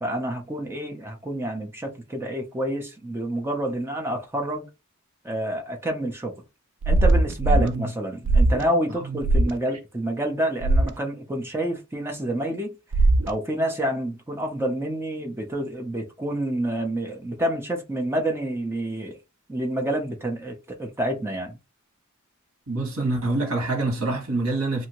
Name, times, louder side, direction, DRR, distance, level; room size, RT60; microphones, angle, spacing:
voice 1, 0.0-4.7 5.2-6.3 6.9-12.7 13.3-19.2 19.5-21.6, right 1 dB, 10° right, 0.6 m, -28 dB
sound 1, 6.8-7.7 8.3-8.6 9.2-9.5 10.6-10.9 12.9-13.3, right 2 dB, 60° right, 0.3 m, -19 dB
voice 2, 7.5-7.9 9.1-9.2 22.7-24.9, right 2 dB, 85° right, 1.3 m, -26 dB
2.7 x 2.7 x 2.9 m
head